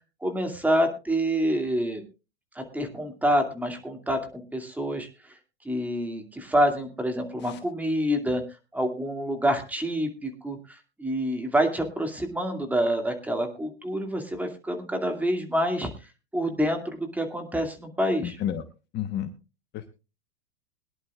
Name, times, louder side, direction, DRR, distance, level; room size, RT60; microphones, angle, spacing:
voice 1, 0.2-2.0 2.5-5.1 5.6-8.4 8.7-15.9 16.3-18.4, equal, 5° right, 4 dB, 2.4 m, -27 dB
voice 2, 18.2-18.6 18.9-19.3 19.7-19.9, left 10 dB, 35° left, 8 dB, 1.1 m, -31 dB
22.0 x 11.0 x 2.4 m, 0.30 s
hypercardioid pair, 110°, 32 cm